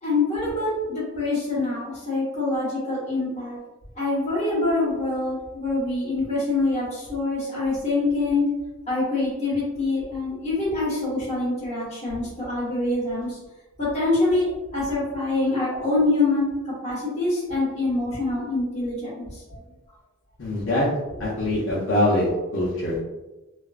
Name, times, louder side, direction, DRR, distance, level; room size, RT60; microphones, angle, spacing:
voice 1, 0.0-3.6 4.0-8.5 8.9-13.4 13.8-19.6, left 2 dB, 30° left, -7 dB, 1.1 m, -25 dB
voice 2, 20.4-20.9 21.2-23.0, left 1 dB, 65° left, -8 dB, 0.7 m, -23 dB
2.4 x 2.2 x 2.3 m, 1.1 s
head